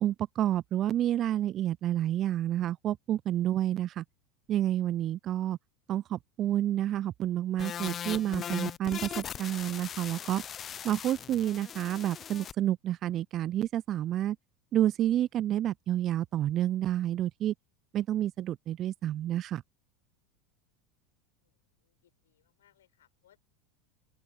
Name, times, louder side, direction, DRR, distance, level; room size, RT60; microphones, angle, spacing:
voice 1, 0.0-4.0 4.5-5.6 5.9-10.4 10.8-14.4 14.7-17.5 17.9-19.6, right 12 dB, 45° right, 0.4 m, -29 dB
sound 1, 7.6-12.5, left 9 dB, 35° left, 0.7 m, -39 dB
voice 2, 21.4-23.4, left 11 dB, 80° left, 6.9 m, -68 dB
open air
hypercardioid pair, 85°, 0 cm